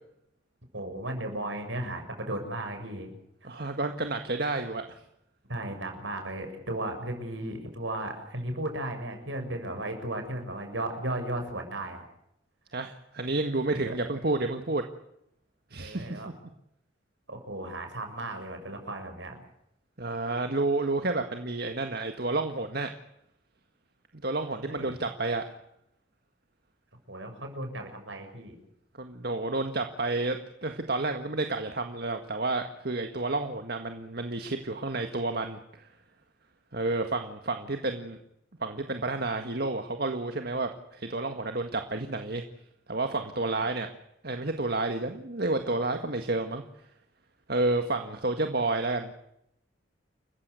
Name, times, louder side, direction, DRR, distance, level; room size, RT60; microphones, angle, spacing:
voice 1, 0.7-3.1 3.4-3.6 5.5-12.1 13.9-14.0 15.8-16.3 17.3-19.4 24.6-25.0 27.1-28.6, right 1 dB, 70° right, 5 dB, 7.0 m, -35 dB
voice 2, 3.4-4.8 12.7-14.8 15.7-16.2 20.0-22.9 24.1-25.4 29.0-35.9 36.7-38.2 38.6-42.4 42.9-43.9 44.2-46.6 47.5-49.1, right 2 dB, 55° right, 6 dB, 1.8 m, -30 dB
29.5 x 15.5 x 8.2 m, 0.80 s
head